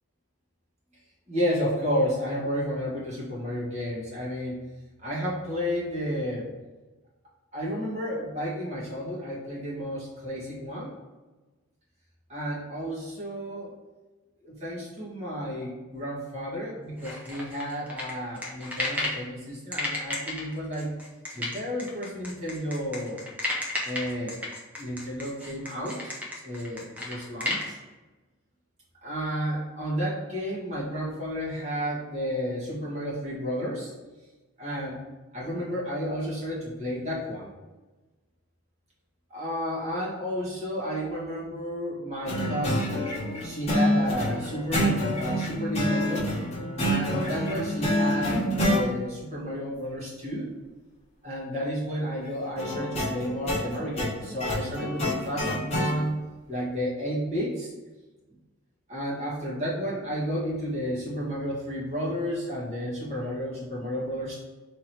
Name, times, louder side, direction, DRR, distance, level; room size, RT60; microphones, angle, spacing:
voice 1, 1.3-4.5 5.0-6.5 7.5-10.9 12.3-13.7 14.4-20.9 21.3-23.2 23.8-24.4 24.7-26.1 26.4-27.8 29.0-33.9 34.6-35.0 35.3-37.5 39.3-43.0 43.4-46.2 46.8-50.5 51.2-56.1 56.5-57.7 58.9-64.4, equal, 30° right, -7 dB, 1.5 m, -31 dB
sound 1, 17.0-19.2 19.7-27.7, left 1 dB, 5° right, 0.7 m, -32 dB
sound 2, 42.3-48.8 52.6-55.9, equal, 30° left, 1.2 m, -27 dB
3.6 x 2.9 x 4.6 m, 1.2 s
head